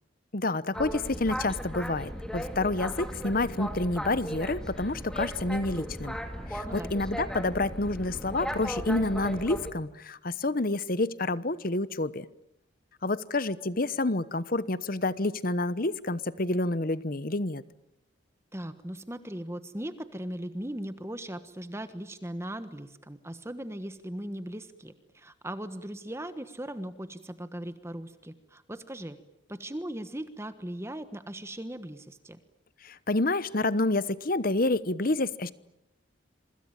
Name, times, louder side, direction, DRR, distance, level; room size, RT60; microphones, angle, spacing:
voice 1, 0.3-6.2 6.5-12.3 13.0-17.6 32.8-35.5, left 2 dB, 45° left, 16 dB, 1.0 m, -28 dB
Boat Water vehicle, 0.7-9.7, equal, 5° left, 2.2 m, -36 dB
voice 2, 18.5-29.2 29.5-32.4, right 1 dB, 15° right, 11 dB, 1.3 m, -38 dB
27.0 x 24.5 x 8.9 m, 0.82 s
head